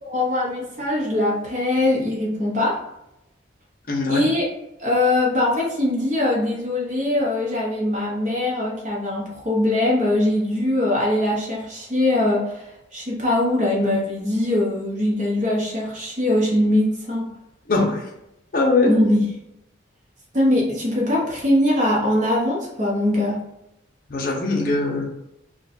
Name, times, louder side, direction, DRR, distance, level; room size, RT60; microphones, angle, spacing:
voice 1, 0.0-2.8 4.1-4.5 4.8-17.3 18.9-19.2 20.3-23.4, left 1 dB, 40° right, -3 dB, 0.7 m, -21 dB
voice 2, 3.9-4.2 17.7-18.0 18.5-19.0 24.1-25.1, left 3 dB, 45° left, -1 dB, 0.6 m, -21 dB
2.5 x 2.2 x 4.0 m, 0.86 s
head